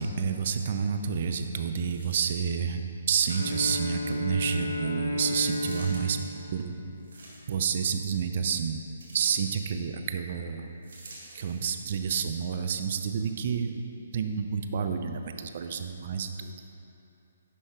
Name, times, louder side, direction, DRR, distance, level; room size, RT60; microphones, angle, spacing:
voice 1, 0.0-2.8 3.1-6.7 7.5-8.8 9.1-10.7 11.3-13.9 14.1-16.7, right 6 dB, 45° right, 7 dB, 0.5 m, -29 dB
sound 1, 1.8-2.5 3.2-3.9 5.5-6.0 7.0-7.7 9.0-9.5 10.8-11.7 12.4-12.5, right 2 dB, 60° right, 1.8 m, -49 dB
Bowed string instrument, 3.2-7.3, left 1 dB, 90° left, 0.7 m, -33 dB
10.5 x 7.0 x 2.4 m, 2.8 s
figure-of-eight pair, 130°, 0 cm